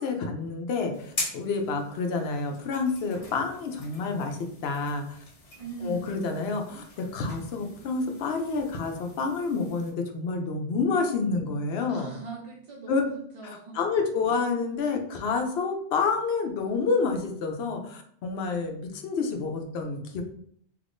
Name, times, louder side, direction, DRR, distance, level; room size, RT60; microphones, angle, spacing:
voice 1, 0.0-5.2 5.8-12.1 12.9-13.0 13.4-20.2, left 4 dB, 75° left, 4 dB, 0.8 m, -29 dB
sound 1, 0.9-9.9, left 2 dB, 40° left, 0.6 m, -42 dB
voice 2, 5.6-6.2 11.9-13.8, right 4 dB, 60° right, 0 dB, 0.3 m, -40 dB
3.4 x 3.0 x 2.5 m, 0.63 s
omnidirectional pair, 1.1 m